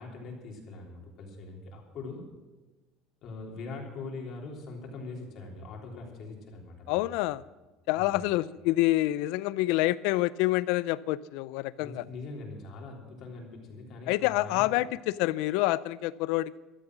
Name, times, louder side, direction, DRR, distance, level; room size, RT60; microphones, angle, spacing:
voice 1, 0.0-2.2 3.2-7.0 7.9-8.2 11.8-14.6, left 3 dB, 45° left, 0 dB, 3.3 m, -42 dB
voice 2, 6.9-7.4 7.9-12.0 14.1-16.6, left 17 dB, 70° left, 19 dB, 0.5 m, -27 dB
14.0 x 12.0 x 6.1 m, 1.2 s
cardioid pair, 160°, 0 cm